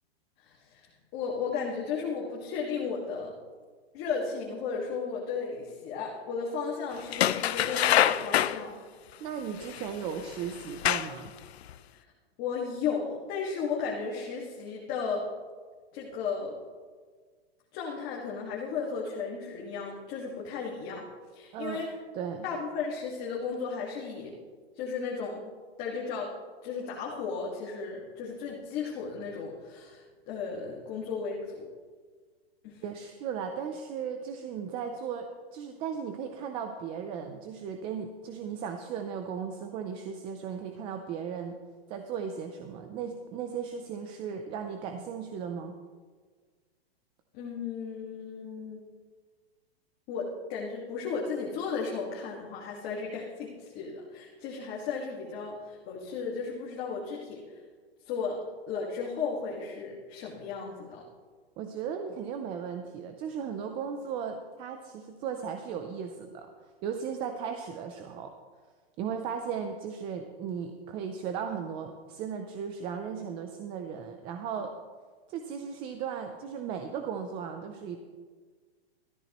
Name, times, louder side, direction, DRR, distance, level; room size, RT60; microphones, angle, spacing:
voice 1, 0.4-0.9 1.1-3.3 3.9-8.7 11.9-12.0 12.4-15.3 15.9-16.5 17.7-21.1 21.3-21.9 22.4-24.3 24.7-25.4 25.8-26.3 26.6-31.7 32.6-32.8 47.3-48.8 50.1-57.6 58.0-61.0, left 5 dB, 30° left, -3 dB, 1.8 m, -35 dB
sound 1, 7.1-8.6 9.7-9.8 10.6-11.3 11.7-11.8, left 11 dB, 85° left, 0.6 m, -25 dB
voice 2, 9.2-11.3 21.5-21.9 22.1-22.5 32.8-41.5 41.9-45.7 61.6-66.5 66.8-68.3 69.0-74.7 75.3-78.0, right 7 dB, 15° right, 6 dB, 0.5 m, -36 dB
17.5 x 13.5 x 3.0 m, 1.5 s
hypercardioid pair, 155°, 31 cm